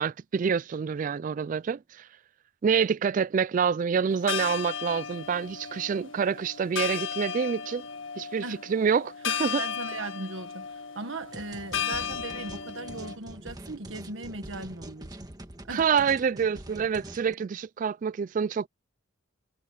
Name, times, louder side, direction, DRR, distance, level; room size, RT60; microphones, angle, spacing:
voice 1, 0.0-2.1 2.6-7.8 8.2-8.4 8.7-9.6 15.7-18.7, right 6 dB, 40° right, 0.3 m, -27 dB
sound 1, 4.1-13.2, left 8 dB, 75° left, 1.6 m, -35 dB
voice 2, 9.6-15.2 15.7-15.9, right 2 dB, 75° right, 1.6 m, -38 dB
sound 2, 11.3-17.3, right 1 dB, 20° right, 1.6 m, -44 dB
head